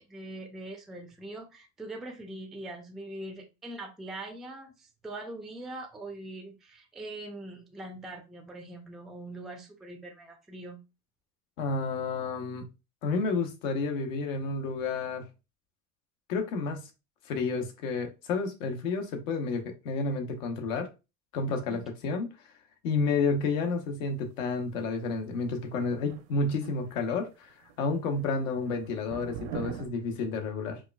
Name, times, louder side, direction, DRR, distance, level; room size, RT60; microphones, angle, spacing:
voice 1, 0.0-10.8 21.7-21.8, right 2 dB, ahead, 3 dB, 0.3 m, -42 dB
voice 2, 11.6-12.6 13.0-15.2 16.3-16.9 17.3-20.9 21.3-22.3 22.8-30.8, left 4 dB, 80° left, 4 dB, 1.0 m, -30 dB
sound 1, 25.7-27.2 27.5-27.8 28.1-29.9, right 8 dB, 70° right, 0.7 m, -42 dB
4.6 x 2.4 x 2.2 m, 0.28 s
supercardioid pair, 125°, 39 cm